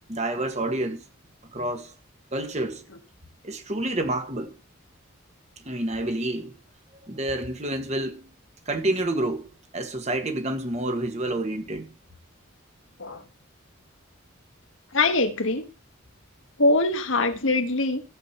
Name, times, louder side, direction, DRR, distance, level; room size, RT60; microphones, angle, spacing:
voice 1, 0.1-1.0 1.5-1.9 2.3-2.8 3.4-4.5 5.7-6.5 7.1-8.2 8.7-11.9, right 1 dB, 30° right, 1.7 m, -28 dB
voice 2, 14.9-15.7 16.6-18.0, left 2 dB, 65° left, 1.5 m, -23 dB
15.0 x 7.7 x 4.4 m
head